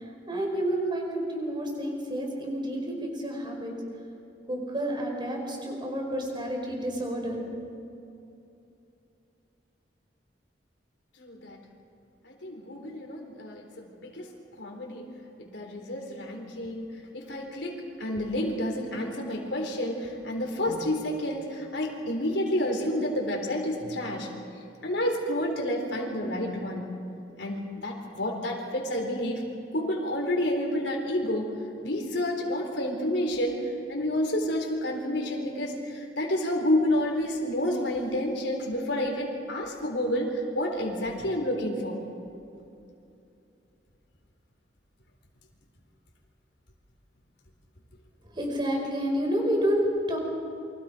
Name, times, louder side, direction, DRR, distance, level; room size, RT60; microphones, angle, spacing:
voice 1, 0.0-3.7 4.5-7.5 48.3-50.2, equal, 25° right, 1 dB, 5.1 m, -29 dB
voice 2, 11.2-11.6 12.2-14.3 14.6-15.0 15.4-24.3 24.8-26.9 27.4-29.4 29.7-31.5 31.8-42.0, left 1 dB, 85° left, 1 dB, 3.9 m, -29 dB
29.0 x 24.5 x 5.1 m, 2.7 s
head